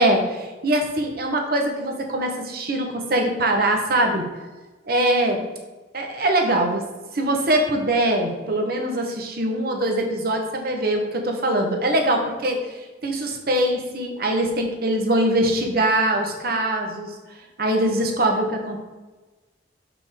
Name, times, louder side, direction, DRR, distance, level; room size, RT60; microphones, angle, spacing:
voice 1, 0.0-4.3 4.8-5.4 5.9-6.8 7.1-12.6 13.0-17.1 17.6-18.8, right 1 dB, 55° right, 3 dB, 1.0 m, -22 dB
6.2 x 5.1 x 3.6 m, 1.2 s
head